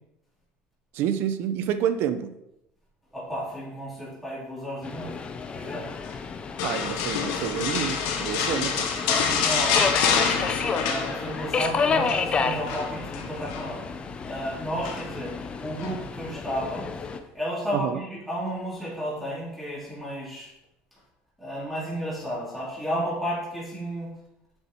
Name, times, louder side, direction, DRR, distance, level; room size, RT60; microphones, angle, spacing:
voice 1, 0.9-2.3 6.6-8.9 17.7-18.0, right 9 dB, 60° right, 10 dB, 0.8 m, -28 dB
voice 2, 3.1-5.2 5.5-5.9 8.3-8.5 9.1-10.0 10.8-13.9 14.3-20.5 21.4-24.1, equal, ahead, -8 dB, 3.5 m, -33 dB
Subway metro underground, 4.8-17.2, left 5 dB, 25° left, 0.6 m, -31 dB
sound 1, 6.6-11.6 11.8-12.2 12.7-13.7 14.8-15.3 15.8-15.9, left 6 dB, 85° left, 1.3 m, -27 dB
7.2 x 7.0 x 4.5 m, 0.84 s
cardioid pair, 150°, 4 cm